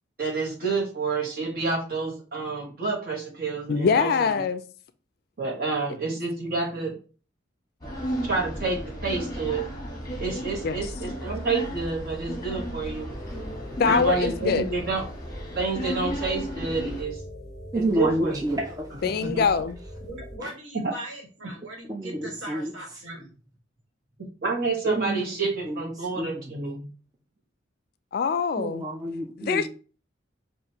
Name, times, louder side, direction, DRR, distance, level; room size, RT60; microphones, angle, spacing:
voice 1, 0.2-4.1 5.4-7.0 8.3-9.6 10.2-13.1 13.8-15.0 15.5-17.2 17.7-18.4 19.2-19.4 20.8-20.9 24.2-26.9, right 4 dB, 50° right, 1.3 m, -29 dB
voice 2, 3.7-4.6 10.6-10.9 13.8-14.6 19.0-19.8 28.1-28.9 29.4-29.7, left 6 dB, 50° left, 0.3 m, -24 dB
sound 1, 7.8-17.0, equal, 20° left, 1.1 m, -34 dB
sound 2, 13.1-20.4, equal, 5° left, 1.8 m, -41 dB
voice 3, 17.7-19.0 20.4-20.5 21.6-22.7 24.8-25.4 25.6-26.5 28.6-29.7, right 1 dB, 20° right, 0.4 m, -29 dB
voice 4, 20.0-23.3, right 1 dB, 75° right, 1.5 m, -40 dB
4.9 x 2.6 x 2.8 m
head